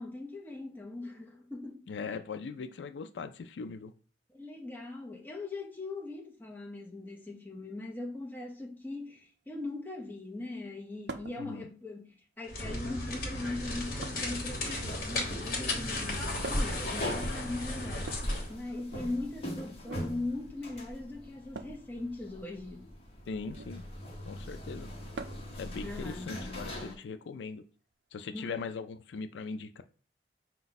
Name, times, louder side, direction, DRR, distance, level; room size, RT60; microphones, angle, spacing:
voice 1, 0.0-1.8 4.3-18.1 18.5-22.9 25.8-26.3 28.3-28.6, left 2 dB, 10° left, 0.8 m, -40 dB
voice 2, 1.9-3.9 11.4-11.7 23.3-23.8 24.2-24.9 25.6-27.6 28.1-29.8, left 4 dB, 85° left, 0.4 m, -40 dB
sound 1, 11.1-11.4 12.5-13.0 14.0-15.1 16.4-16.9 18.0-19.1 19.8-20.1 21.5-21.8 23.4-23.8 25.1-25.6 27.0-27.1 28.4-28.5, right 3 dB, 70° right, 0.4 m, -44 dB
sound 2, 12.5-18.5, left 2 dB, 55° left, 1.2 m, -35 dB
sound 3, 14.9-27.0, equal, 35° left, 1.0 m, -42 dB
4.9 x 2.3 x 4.0 m
head